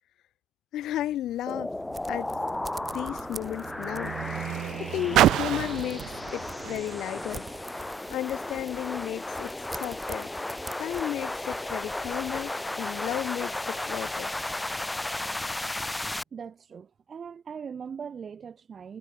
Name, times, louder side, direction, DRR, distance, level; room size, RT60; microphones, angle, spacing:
voice 1, 0.7-1.7 2.1-2.3 2.9-4.2 4.8-7.5 7.7-10.3 10.8-14.3, left 13 dB, 80° left, 1.8 m, -34 dB
sound 1, 0.8-12.5, right 3 dB, 25° right, 2.3 m, -48 dB
sound 2, 1.5-16.2, left 2 dB, 10° left, 0.8 m, -34 dB
Car, 1.5-8.1 9.0-9.1, right 13 dB, 85° right, 0.5 m, -30 dB
voice 2, 16.3-19.0, right 6 dB, 50° right, 1.8 m, -40 dB
cardioid pair, 90°, 0 cm